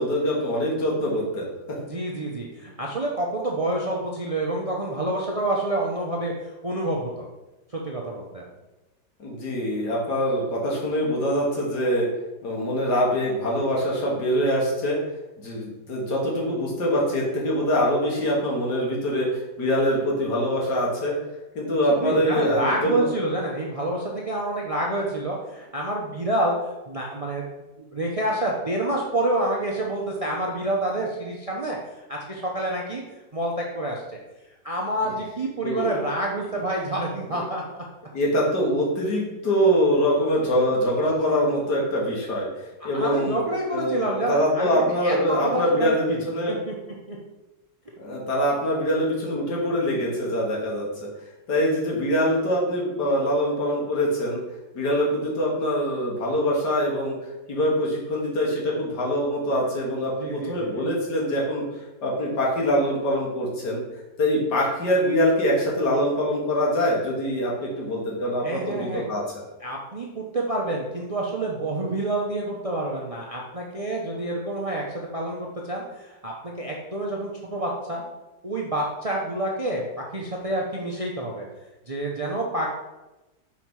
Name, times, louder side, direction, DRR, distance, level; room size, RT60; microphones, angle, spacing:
voice 1, 0.0-1.8 9.2-12.1 12.4-15.0 15.4-21.1 21.6-23.1 35.6-36.0 38.1-42.5 42.8-43.4 43.7-44.0 44.3-46.5 48.0-50.9 51.5-54.4 54.7-57.1 57.5-61.6 62.0-63.8 64.2-69.4, equal, 65° left, -3 dB, 2.2 m, -24 dB
voice 2, 1.9-7.3 7.7-8.5 21.9-26.5 26.9-27.4 27.8-33.0 33.3-34.2 34.6-37.6 42.9-44.7 45.0-46.7 47.1-47.2 60.2-60.9 68.4-69.1 69.6-78.0 78.4-81.5 81.9-82.7, right 1 dB, 70° right, -2 dB, 0.3 m, -28 dB
5.7 x 4.8 x 4.7 m, 1.0 s
omnidirectional pair, 1.9 m